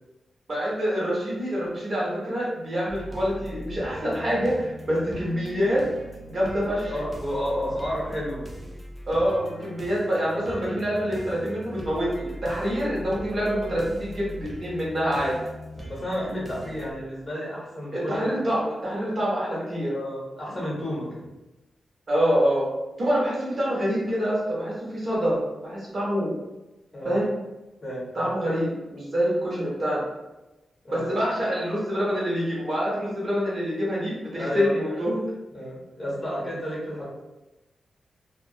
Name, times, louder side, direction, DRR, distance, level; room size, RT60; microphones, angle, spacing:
voice 1, 0.5-5.9 6.3-6.9 9.1-15.3 17.9-19.9 22.1-22.7 23.0-26.3 27.0-27.3 28.1-30.1 30.9-35.2, equal, 40° right, -6 dB, 0.8 m, -26 dB
sound 1, 2.9-16.9, equal, 10° right, 0.4 m, -40 dB
voice 2, 6.6-8.5 15.7-18.2 19.9-21.3 26.9-27.2 27.8-28.3 30.8-31.1 34.4-34.7 35.5-37.1, equal, 25° left, -6 dB, 0.8 m, -31 dB
2.3 x 2.1 x 2.7 m, 1.0 s
wide cardioid pair, 160°, 0 cm